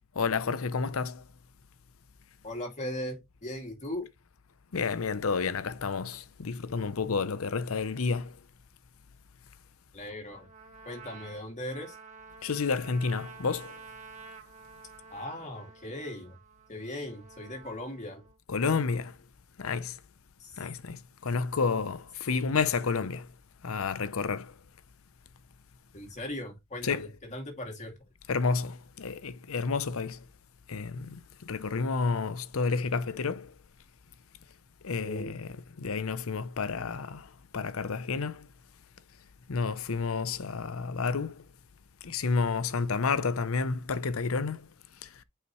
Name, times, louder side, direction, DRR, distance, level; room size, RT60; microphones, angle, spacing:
voice 1, 0.1-1.3 4.7-8.4 12.4-13.8 18.5-19.2 19.6-20.0 20.6-23.3 23.6-24.6 26.8-27.1 28.3-30.2 30.7-33.5 34.8-38.5 39.5-41.5 42.0-44.7 45.0-45.2, left 4 dB, 70° left, 0.7 m, -30 dB
voice 2, 2.4-4.1 9.9-10.5 10.9-11.9 15.1-16.4 16.7-18.2 20.4-20.5 25.9-27.9 35.0-35.4, left 1 dB, 35° left, 2.5 m, -38 dB
Trumpet, 10.3-18.4, right 4 dB, 35° right, 1.7 m, -50 dB
8.3 x 5.0 x 3.1 m
head